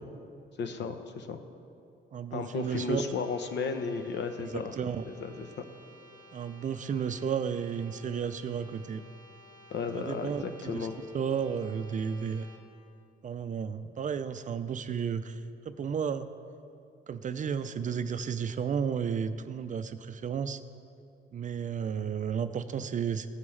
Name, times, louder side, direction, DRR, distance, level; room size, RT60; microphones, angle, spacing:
voice 1, 0.6-1.4 2.3-4.8 5.1-5.6 9.7-10.9, left 5 dB, 65° left, 7 dB, 0.8 m, -34 dB
voice 2, 2.1-3.0 4.5-5.0 6.3-9.0 9.9-10.9 11.1-12.5 13.2-16.3 17.1-20.6 21.3-23.3, right 7 dB, 40° right, 11 dB, 0.4 m, -33 dB
sound 1, 2.5-12.6, equal, 20° left, 1.4 m, -55 dB
16.0 x 5.3 x 3.2 m, 2.5 s
cardioid pair, 90°, 20 cm